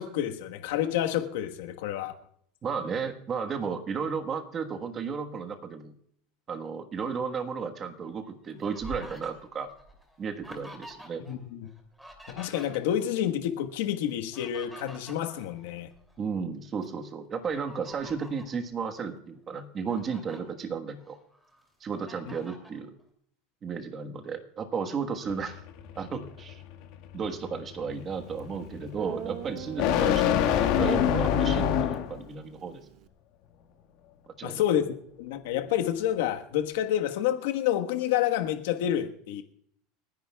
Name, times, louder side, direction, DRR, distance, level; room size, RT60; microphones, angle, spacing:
voice 1, 0.0-2.1 11.3-11.7 12.3-15.9 22.3-22.4 34.4-39.4, left 11 dB, 80° left, 1.3 m, -29 dB
voice 2, 2.6-5.9 6.5-9.7 10.2-11.2 16.2-21.2 21.8-22.9 23.6-25.6 26.0-26.6 27.1-32.8 34.4-34.9, right 5 dB, 30° right, 1.4 m, -34 dB
Fowl, 8.0-11.4 11.6-13.2 14.1-16.2 16.7-16.8 17.5-18.6 19.2-19.3 19.6-20.4 20.9-21.6 22.1-22.8, equal, ahead, 2.8 m, -48 dB
sound 1, 25.3-32.2, left 9 dB, 60° left, 1.7 m, -27 dB
Guitar, 28.4-28.5 29.0-33.1, right 10 dB, 50° right, 0.9 m, -43 dB
29.5 x 10.5 x 2.3 m
supercardioid pair, 135°, 0 cm